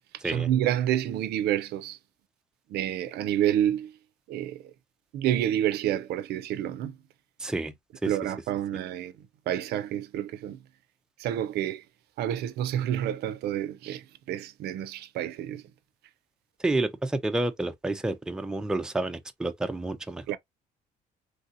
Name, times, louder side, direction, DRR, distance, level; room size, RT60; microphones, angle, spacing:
voice 1, 0.2-2.0 2.7-3.9 4.3-4.6 5.1-6.9 8.1-9.1 9.5-10.6 11.2-11.8 12.2-15.6 20.3-20.4, right 11 dB, 75° right, 0.4 m, -28 dB
voice 2, 7.4-7.7 8.0-8.1 16.6-20.4, right 2 dB, 5° right, 0.4 m, -29 dB
3.2 x 2.7 x 2.5 m
cardioid pair, 110°, 17 cm